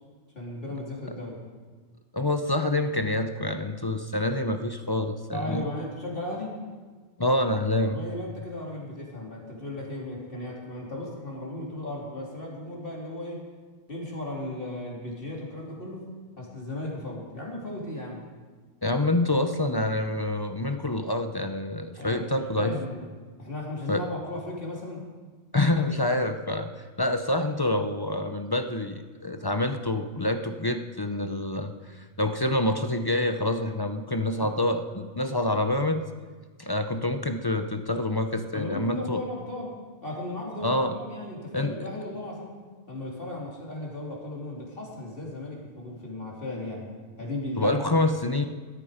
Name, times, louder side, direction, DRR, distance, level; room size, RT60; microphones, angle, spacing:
voice 1, 0.3-1.4 5.3-6.6 7.9-13.4 13.9-18.2 22.0-23.0 23.4-25.1 34.4-34.5 38.5-42.6 42.9-46.9 47.2-48.1, left 1 dB, 40° left, -3 dB, 3.6 m, -36 dB
voice 2, 2.1-5.7 7.2-8.0 18.8-22.7 23.9-24.0 25.5-26.7 27.0-36.0 36.6-39.2 40.6-40.9 41.5-41.7 47.6-48.4, left 1 dB, 25° left, 7 dB, 0.6 m, -27 dB
17.0 x 13.0 x 5.1 m, 1.4 s
omnidirectional pair, 1.4 m